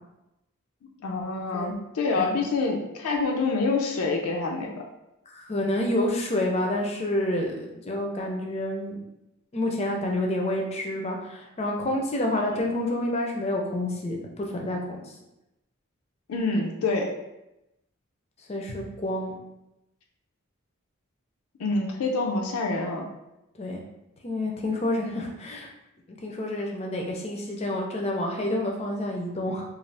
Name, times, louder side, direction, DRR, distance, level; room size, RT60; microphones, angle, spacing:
voice 1, 1.0-4.8 12.5-12.6 16.3-17.1 21.6-23.1, left 3 dB, 90° left, 1 dB, 0.4 m, -27 dB
voice 2, 5.3-9.0 9.5-15.0 18.5-19.3 23.6-23.8 24.2-25.7 26.2-29.6, left 1 dB, 30° left, 1 dB, 0.4 m, -28 dB
2.5 x 2.3 x 3.3 m, 0.91 s
head